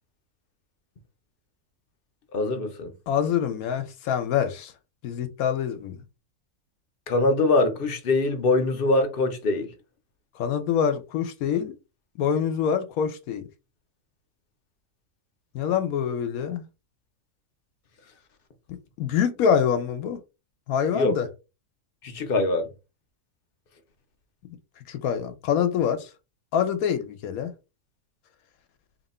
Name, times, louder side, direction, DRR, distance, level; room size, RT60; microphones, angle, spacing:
voice 1, 2.3-2.9 7.1-9.7 20.9-21.1 22.0-22.7, left 2 dB, 50° left, 0.8 m, -23 dB
voice 2, 3.1-4.7 5.0-6.0 10.4-11.7 12.2-13.4 15.5-16.6 19.0-20.2 20.7-21.3 24.9-26.1 26.5-27.5, left 8 dB, 85° left, 1.1 m, -25 dB
3.0 x 2.8 x 4.2 m
omnidirectional pair, 1.5 m